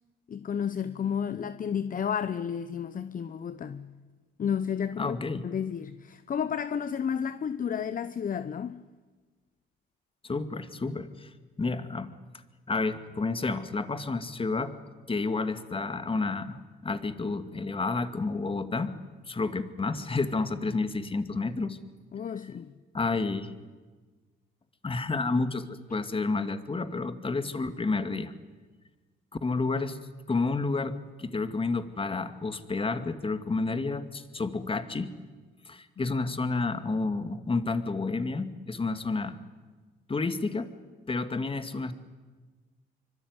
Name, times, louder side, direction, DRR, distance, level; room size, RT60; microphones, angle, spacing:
voice 1, 0.3-4.0 4.4-8.8 22.1-22.8, left 7 dB, 45° left, 0.9 m, -32 dB
voice 2, 5.0-5.5 10.2-11.3 11.6-12.1 12.7-14.7 15.1-16.6 16.8-18.9 19.3-21.8 22.9-23.5 24.8-28.3 29.4-30.0 30.3-35.1 35.6-39.4 40.1-40.7 41.1-41.9, left 3 dB, 25° left, 2.2 m, -30 dB
25.0 x 24.5 x 9.7 m
cardioid pair, 90°, 20 cm